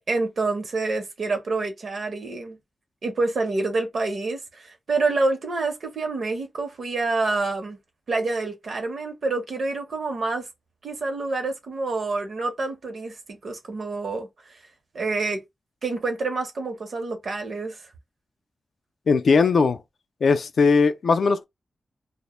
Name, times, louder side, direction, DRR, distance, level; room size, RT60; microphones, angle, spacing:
voice 1, 0.1-2.6 3.0-7.8 8.1-10.5 10.8-14.3 14.9-15.4 15.8-17.8, right 3 dB, 60° right, 0.7 m, -27 dB
voice 2, 19.1-19.8 20.2-21.4, left 4 dB, 65° left, 0.3 m, -19 dB
2.1 x 2.0 x 2.9 m
wide cardioid pair, 140°, 0 cm